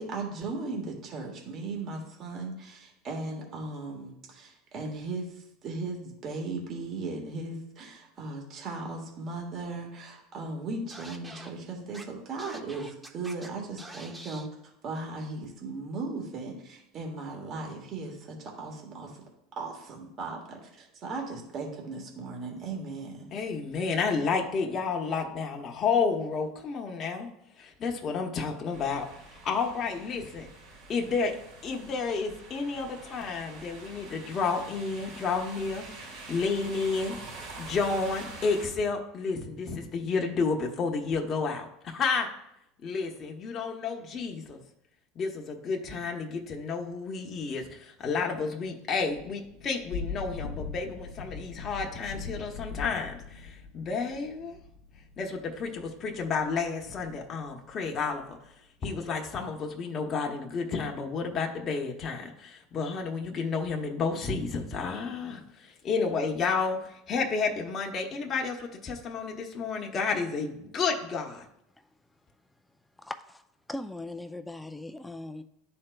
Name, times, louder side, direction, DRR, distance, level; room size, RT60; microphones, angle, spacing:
voice 1, 0.0-14.5 14.8-19.2 19.6-23.3, right 3 dB, 40° right, 1 dB, 1.5 m, -37 dB
Scratching (performance technique), 10.9-11.5 11.9-12.0 12.4-13.5 13.8-14.5, right 1 dB, 15° right, 0.7 m, -45 dB
voice 2, 23.3-27.3 27.6-30.5 30.9-31.3 31.6-37.2 37.6-42.3 42.8-44.6 45.2-54.6 55.2-58.4 58.8-71.5, left 4 dB, 35° left, 1 dB, 0.8 m, -31 dB
sound 1, 28.7-38.7, right 3 dB, 80° right, 2.2 m, -46 dB
Thunder / Rain, 49.0-58.5, left 4 dB, 75° left, 0.6 m, -41 dB
voice 3, 73.0-73.4 73.7-75.4, left 2 dB, 5° left, 8 dB, 0.3 m, -39 dB
11.0 x 4.3 x 2.2 m, 0.79 s
supercardioid pair, 120°, 0 cm